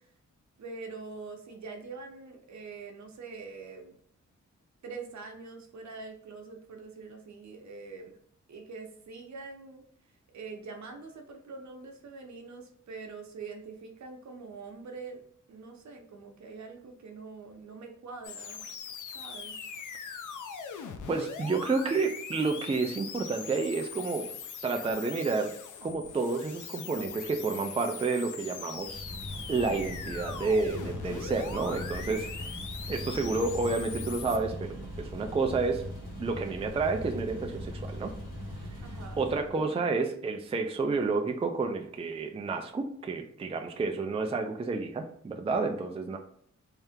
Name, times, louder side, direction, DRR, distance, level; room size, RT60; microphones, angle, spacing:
voice 1, 0.6-3.9 4.8-8.2 8.5-9.8 10.3-15.2 15.5-18.6 19.1-19.6 38.8-39.8, right 4 dB, 65° right, 3 dB, 0.8 m, -44 dB
sound 1, 18.2-34.4, left 6 dB, 90° left, 0.5 m, -41 dB
voice 2, 21.1-24.3 24.6-25.5 25.8-29.1 29.5-32.5 32.9-35.8 36.2-38.1 39.2-46.2, right 4 dB, 20° right, 5 dB, 0.3 m, -30 dB
sound 2, 28.8-39.6, left 1 dB, 60° left, 1.4 m, -40 dB
3.3 x 2.8 x 3.5 m, 0.64 s
wide cardioid pair, 120°, 30 cm